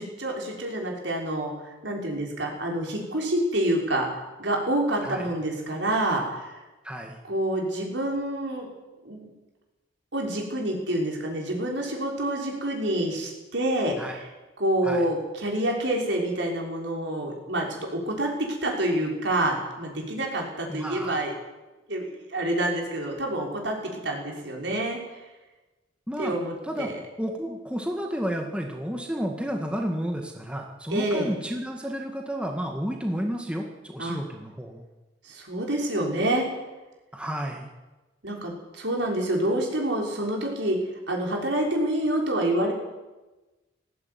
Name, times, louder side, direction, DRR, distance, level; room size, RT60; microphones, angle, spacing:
voice 1, 0.0-6.6 7.3-8.7 9.0-9.3 10.1-14.2 14.6-17.7 18.1-21.3 21.9-25.0 26.2-27.0 30.9-31.3 34.0-34.2 35.2-36.5 38.2-40.8 41.1-42.7, right 1 dB, 70° right, 0 dB, 6.0 m, -27 dB
voice 2, 6.8-7.2 14.0-14.2 14.8-15.1 20.7-21.2 26.1-26.4 26.6-26.9 27.2-34.8 37.1-37.7, equal, 5° right, 2 dB, 2.0 m, -31 dB
18.5 x 16.0 x 9.7 m, 1.1 s
head